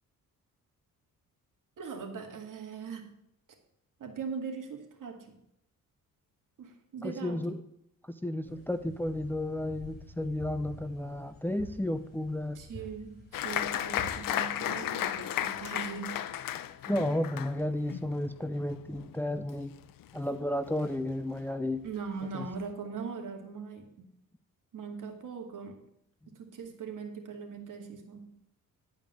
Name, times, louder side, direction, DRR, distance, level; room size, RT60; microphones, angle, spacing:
voice 1, 1.8-3.1 4.0-5.4 6.6-7.4 12.5-16.2 21.8-24.1 24.7-25.8 26.3-28.2, right 5 dB, 65° right, 3 dB, 2.4 m, -40 dB
voice 2, 7.0-7.6 8.0-12.6 16.9-19.7 20.1-21.8 22.3-22.5, left 1 dB, 5° left, 10 dB, 0.5 m, -32 dB
sound 1, 8.4-14.3, left 1 dB, 25° left, 4.7 m, -49 dB
Applause, 13.3-20.4 20.7-21.4 21.8-21.9 22.2-22.7, left 11 dB, 75° left, 0.7 m, -35 dB
11.5 x 5.2 x 7.6 m, 0.77 s
cardioid pair, 95°, 34 cm